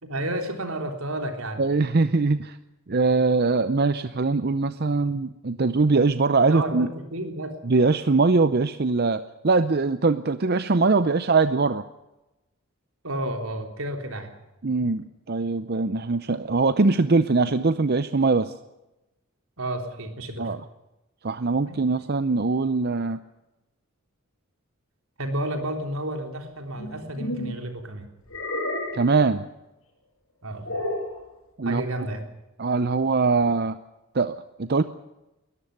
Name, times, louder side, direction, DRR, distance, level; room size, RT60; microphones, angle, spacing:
voice 1, 0.0-1.6 6.5-7.6 13.0-14.3 19.6-20.5 21.7-21.8 25.2-28.1 30.4-30.7 31.6-32.3, right 1 dB, 80° right, 4 dB, 3.6 m, -31 dB
voice 2, 1.6-2.6 2.9-6.9 7.6-11.8 14.6-18.5 20.4-20.6 21.2-23.2 28.9-29.4 31.6-31.8 32.6-33.8 34.1-34.8, right 3 dB, 50° right, 12 dB, 0.6 m, -22 dB
sound 1, 26.8-27.6 28.3-29.1 30.6-31.2, left 1 dB, 75° left, 6.2 m, -30 dB
22.0 x 14.0 x 9.5 m, 0.98 s
head